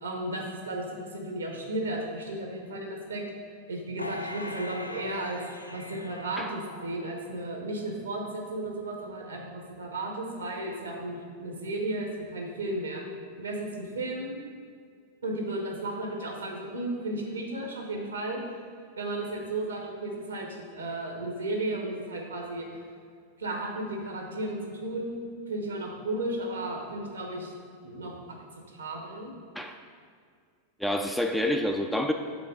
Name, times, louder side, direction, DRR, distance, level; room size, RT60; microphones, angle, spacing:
voice 1, 0.0-3.2 3.7-5.4 5.7-13.0 13.4-14.4 15.2-18.4 19.0-22.8 23.4-27.5 27.8-28.1 28.7-29.3, right 1 dB, 70° right, 1 dB, 1.0 m, -34 dB
sound 1, 4.0-7.4 7.9-8.0, left 2 dB, 85° left, 0.4 m, -41 dB
voice 2, 30.8-32.1, left 1 dB, ahead, 4 dB, 0.3 m, -28 dB
5.1 x 3.9 x 5.2 m, 2.1 s
figure-of-eight pair, 90°, 0 cm